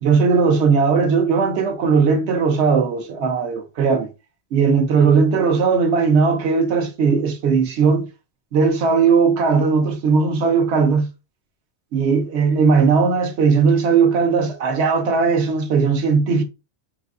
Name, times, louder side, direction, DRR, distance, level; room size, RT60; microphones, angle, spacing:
voice 1, 0.0-4.1 4.5-8.1 8.5-11.1 11.9-16.4, right 5 dB, 70° right, 1.0 m, -18 dB
3.9 x 2.6 x 2.4 m
omnidirectional pair, 1.2 m